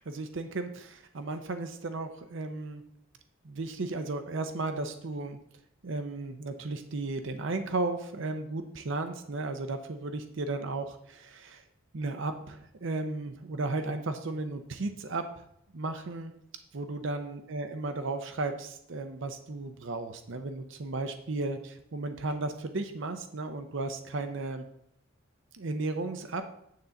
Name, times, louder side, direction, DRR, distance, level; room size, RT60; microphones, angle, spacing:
voice 1, 0.0-2.8 3.4-5.4 5.8-11.6 11.9-15.4 15.7-16.3 16.7-24.6 25.5-26.4, right 2 dB, 60° right, 8 dB, 0.6 m, -34 dB
9.4 x 3.8 x 7.0 m, 0.74 s
head